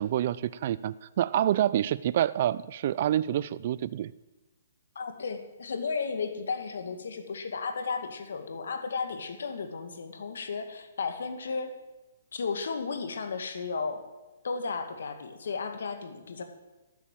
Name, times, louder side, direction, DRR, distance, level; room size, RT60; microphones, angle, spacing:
voice 1, 0.0-4.1, right 11 dB, 45° right, 18 dB, 0.4 m, -27 dB
voice 2, 5.0-11.7 12.3-14.0 14.4-16.4, left 5 dB, 75° left, 7 dB, 2.2 m, -34 dB
13.0 x 8.3 x 9.0 m, 1.1 s
hypercardioid pair, 150°, 0 cm